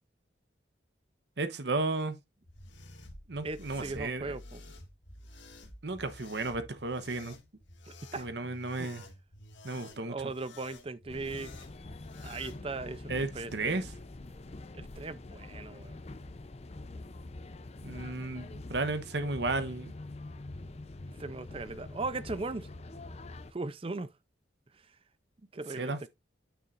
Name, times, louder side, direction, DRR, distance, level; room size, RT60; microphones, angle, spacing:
voice 1, 1.4-2.2 3.3-4.4 5.8-7.3 8.2-9.0 9.6-10.3 13.1-13.9 17.8-19.9 25.7-26.1, right 3 dB, 65° right, 1.0 m, -33 dB
sound 1, 2.4-12.6, left 2 dB, 85° left, 2.0 m, -51 dB
voice 2, 3.4-4.6 7.9-8.3 8.8-8.9 9.9-11.5 12.2-13.8 14.7-16.0 21.2-22.7 23.5-24.1 25.5-26.1, right 3 dB, 30° right, 0.5 m, -38 dB
sound 2, 11.1-23.5, left 2 dB, 35° left, 0.6 m, -45 dB
9.4 x 6.8 x 2.5 m
head